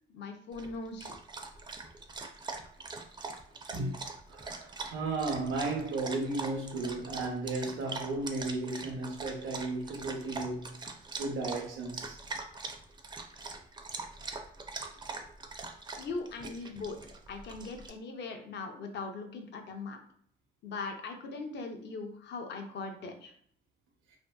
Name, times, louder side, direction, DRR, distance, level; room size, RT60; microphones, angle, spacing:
voice 1, 0.1-1.1 16.0-17.0 17.3-20.0 20.6-23.3, left 3 dB, 60° left, 0.5 m, -40 dB
Dog, 0.5-17.9, right 3 dB, 25° right, 0.4 m, -42 dB
voice 2, 4.3-10.8 11.2-12.2, right 3 dB, 85° right, 0.7 m, -34 dB
2.6 x 2.5 x 2.3 m
cardioid pair, 90°, 20 cm